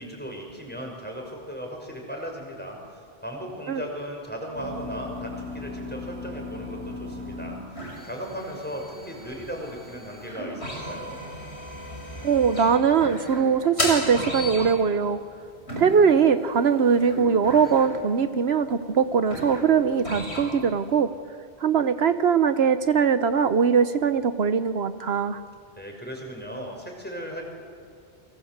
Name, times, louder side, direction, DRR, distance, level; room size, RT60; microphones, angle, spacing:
voice 1, 0.0-11.2 25.8-27.4, equal, 10° left, 0 dB, 6.1 m, -37 dB
sound 1, 4.5-21.0, left 1 dB, 85° left, 7.2 m, -35 dB
voice 2, 12.2-15.2 15.8-21.1 21.6-25.4, right 6 dB, 75° right, 11 dB, 1.1 m, -21 dB
30.0 x 23.5 x 8.0 m, 2.2 s
omnidirectional pair, 1.1 m